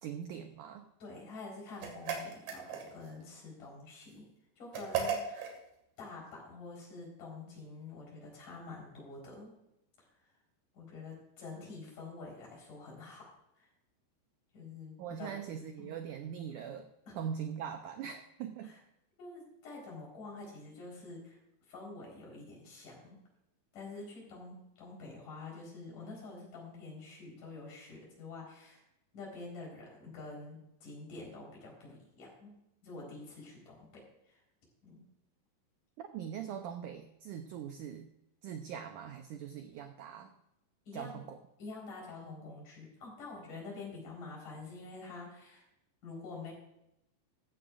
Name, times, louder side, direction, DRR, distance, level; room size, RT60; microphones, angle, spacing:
voice 1, 0.0-0.9 15.0-16.9 17.2-18.7 36.0-38.1 38.4-40.3 40.9-41.4, right 8 dB, 90° right, 6 dB, 1.8 m, -41 dB
voice 2, 1.0-4.3 4.6-5.5 6.0-9.5 10.0-10.3 10.7-13.3 13.6-13.7 14.5-15.3 15.8-15.9 17.1-17.2 18.6-18.8 19.2-21.4 21.7-23.2 23.7-28.8 29.1-32.5 32.8-34.4 34.8-35.0 40.9-41.2 41.6-45.6 46.0-46.5, left 3 dB, 55° left, -2 dB, 5.6 m, -47 dB
sound 1, 1.8-3.1 4.7-5.6, right 6 dB, 65° right, 3.7 m, -36 dB
15.0 x 14.0 x 2.5 m, 0.84 s
omnidirectional pair, 4.6 m